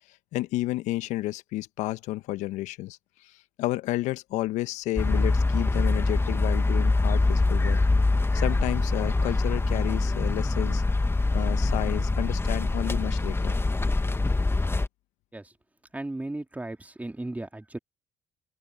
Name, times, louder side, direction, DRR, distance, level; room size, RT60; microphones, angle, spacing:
voice 1, 0.3-3.0 3.2-7.8 8.3-10.8 11.3-13.6, left 17 dB, 70° left, 1.4 m, -31 dB
sound 1, 5.0-14.9, left 3 dB, 20° left, 1.8 m, -24 dB
voice 2, 15.9-17.8, right 2 dB, 10° right, 2.7 m, -35 dB
open air
hypercardioid pair, 50°, 13 cm